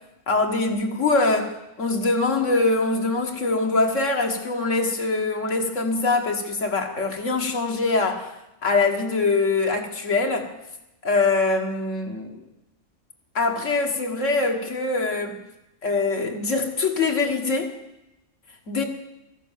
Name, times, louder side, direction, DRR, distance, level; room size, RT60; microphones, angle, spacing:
voice 1, 0.3-1.5 1.8-8.3 8.6-10.5 11.0-12.4 13.4-15.4 15.8-17.7 18.7-18.8, left 3 dB, 85° left, 2 dB, 2.1 m, -23 dB
13.5 x 11.0 x 7.4 m, 0.91 s
omnidirectional pair, 1.3 m